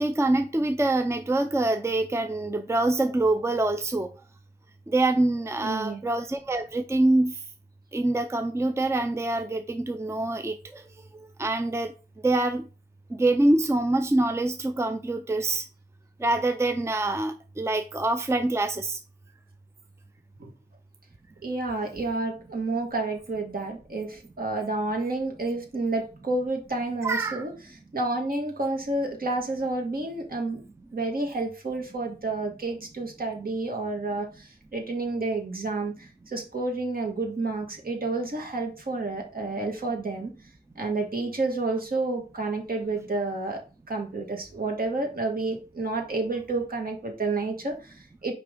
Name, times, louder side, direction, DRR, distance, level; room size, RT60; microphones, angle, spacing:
voice 1, 0.0-4.1 4.9-7.4 7.9-10.8 11.4-11.9 12.2-12.6 13.2-15.6 16.2-19.0 27.0-27.5, right 2 dB, 15° right, 0.5 m, -25 dB
voice 2, 5.6-6.0 20.4-20.5 21.4-30.6 30.9-40.3 40.8-43.6 43.9-48.3, right 2 dB, 55° right, 1.9 m, -30 dB
5.9 x 4.9 x 3.8 m
wide cardioid pair, 110°, 18 cm